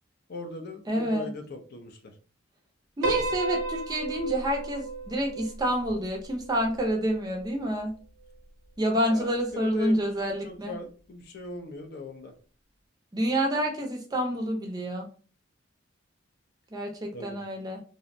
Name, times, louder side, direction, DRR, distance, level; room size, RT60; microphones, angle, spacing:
voice 1, 0.3-2.1 9.1-12.3 17.1-17.4, left 3 dB, 50° left, 5 dB, 0.4 m, -39 dB
voice 2, 0.9-1.3 3.0-7.9 8.8-10.7 13.1-15.1 16.7-17.8, equal, 20° right, 2 dB, 0.4 m, -28 dB
Piano, 3.0-7.4, right 3 dB, 90° right, 0.7 m, -34 dB
2.5 x 2.0 x 2.5 m, 0.39 s
head